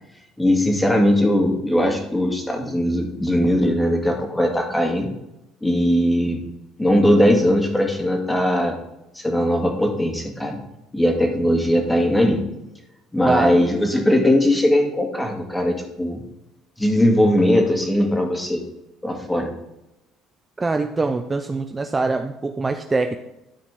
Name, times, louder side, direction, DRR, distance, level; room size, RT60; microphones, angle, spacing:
voice 1, 0.4-5.1 5.6-6.4 6.8-8.7 9.2-10.6 10.9-12.4 13.1-16.2 16.8-18.6 19.0-19.5, left 1 dB, 10° left, 2 dB, 2.1 m, -19 dB
voice 2, 13.3-13.6 20.6-23.2, right 3 dB, 20° right, 6 dB, 0.6 m, -23 dB
12.5 x 4.8 x 3.8 m, 0.93 s
supercardioid pair, 85°, 0 cm